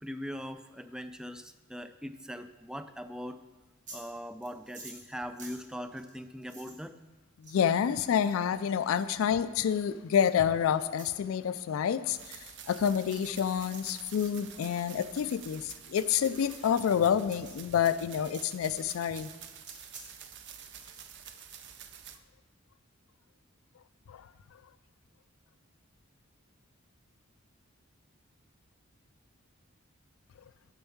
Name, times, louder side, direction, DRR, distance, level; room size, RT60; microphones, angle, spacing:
voice 1, 0.0-3.4 3.9-7.0, equal, 5° right, 10 dB, 0.3 m, -41 dB
sound 1, 3.6-4.1 4.4-6.8 7.4-7.8 8.2-9.2 10.1-10.3 10.9-11.1 11.5-11.8 12.0-12.3 12.7-12.8 13.2-13.3 13.6-14.4 15.0-15.3 16.1-16.3 16.5-16.7 17.5-17.6 18.3-18.5 19.6-20.1 20.4-21.2, right 2 dB, 40° right, 1.8 m, -51 dB
voice 2, 7.4-19.3 24.1-24.3, left 8 dB, 80° left, 13 dB, 0.3 m, -28 dB
sound 2, 12.1-22.2, right 8 dB, 60° right, 0.6 m, -48 dB
6.9 x 5.3 x 7.0 m, 1.2 s
head